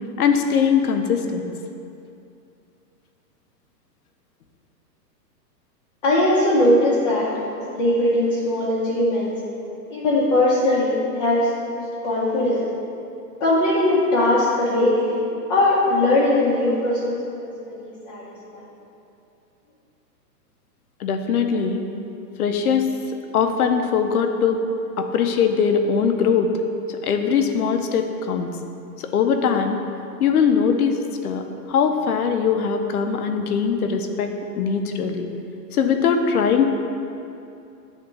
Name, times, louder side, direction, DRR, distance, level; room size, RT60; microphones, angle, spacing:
voice 1, 0.2-1.5 21.0-21.8 22.4-22.9 23.3-24.6 25.0-26.5 26.9-28.5 29.0-29.8 30.2-35.3 35.7-36.7, left 6 dB, 60° left, 5 dB, 0.7 m, -21 dB
voice 2, 6.0-9.3 9.9-12.6 13.4-15.2 15.5-18.6, left 1 dB, 25° left, -8 dB, 0.8 m, -20 dB
9.5 x 3.6 x 3.7 m, 2.6 s
hypercardioid pair, 160°, 50 cm